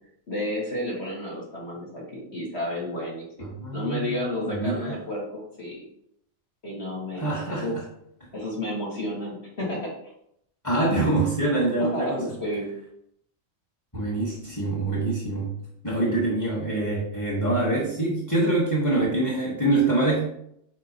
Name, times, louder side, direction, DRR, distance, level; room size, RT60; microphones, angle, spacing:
voice 1, 0.3-5.8 6.6-7.8 8.3-9.8 11.8-12.7, left 1 dB, 50° left, -5 dB, 2.3 m, -31 dB
voice 2, 3.6-4.2 4.4-4.9 7.2-7.6 10.6-12.2 13.9-15.5 15.8-20.2, right 2 dB, 15° left, -5 dB, 1.3 m, -25 dB
7.6 x 4.4 x 2.9 m, 0.72 s
omnidirectional pair, 1.4 m